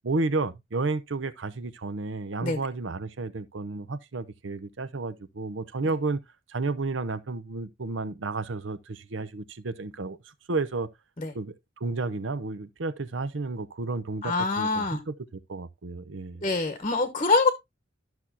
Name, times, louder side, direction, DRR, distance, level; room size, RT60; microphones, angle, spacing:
voice 1, 0.0-6.2 6.5-10.2 10.5-10.9 11.3-15.1 15.5-16.4, right 3 dB, 75° right, 0.7 m, -32 dB
voice 2, 14.2-15.0 16.4-17.5, left 3 dB, 35° left, 1.0 m, -25 dB
12.5 x 6.1 x 2.7 m
head